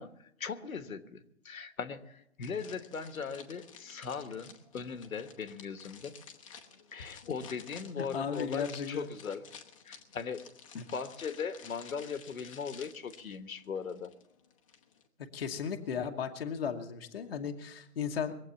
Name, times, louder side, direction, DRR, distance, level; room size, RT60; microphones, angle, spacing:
voice 1, 0.0-6.1 6.9-9.4 9.8-10.5 10.7-14.1, left 6 dB, 65° left, 11 dB, 1.4 m, -39 dB
sound 1, 2.4-15.1, left 7 dB, 20° left, 1.0 m, -53 dB
voice 2, 8.0-9.1 10.8-10.9 15.3-18.4, left 7 dB, 40° left, 3 dB, 1.2 m, -35 dB
22.0 x 8.2 x 7.0 m, 0.81 s
hypercardioid pair, 160°, 45 cm